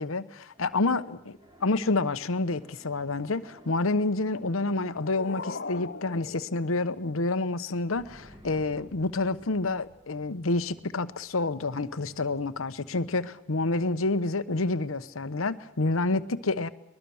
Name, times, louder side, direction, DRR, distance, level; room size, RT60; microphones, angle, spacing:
voice 1, 0.0-16.7, left 3 dB, 85° left, 12 dB, 1.0 m, -28 dB
sound 1, 0.5-6.5 7.9-13.3, equal, 20° right, 3.0 m, -57 dB
sound 2, 4.5-7.5, left 4 dB, 55° left, 0.8 m, -41 dB
23.0 x 21.0 x 7.1 m, 0.80 s
head